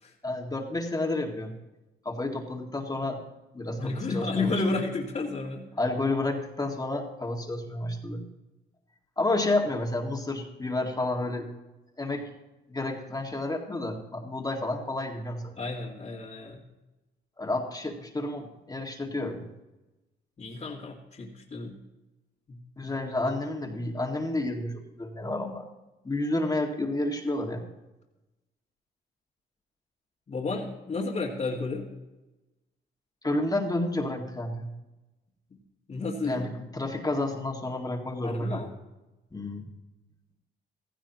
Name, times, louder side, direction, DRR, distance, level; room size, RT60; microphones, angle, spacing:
voice 1, 0.2-1.5 2.1-3.2 3.5-4.5 5.8-8.2 9.2-11.5 12.0-12.2 12.7-15.4 17.4-19.4 22.8-25.7 26.0-27.6 33.2-34.7 36.2-38.7 39.3-39.7, left 2 dB, 20° left, 1 dB, 2.1 m, -30 dB
voice 2, 3.8-5.7 15.6-16.6 20.4-21.8 22.5-22.9 23.2-23.4 30.3-31.9 35.9-36.5 38.2-38.7, left 3 dB, 35° left, -5 dB, 2.2 m, -32 dB
16.0 x 15.0 x 3.0 m, 1.0 s
cardioid pair, 90°, 20 cm